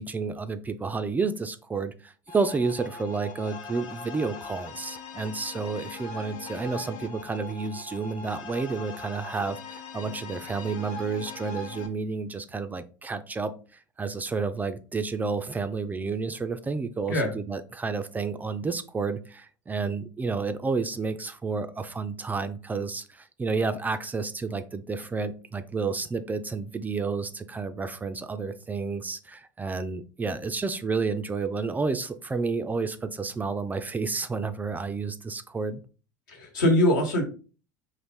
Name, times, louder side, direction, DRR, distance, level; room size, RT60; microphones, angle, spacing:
voice 1, 0.0-13.5 14.0-35.8, right 4 dB, 15° right, 10 dB, 0.3 m, -30 dB
sound 1, 2.3-11.9, left 4 dB, 45° left, 0.7 m, -41 dB
voice 2, 36.3-37.2, left 1 dB, 75° left, 2 dB, 1.2 m, -22 dB
4.0 x 2.5 x 3.5 m, 0.36 s
hypercardioid pair, 80°, 11 cm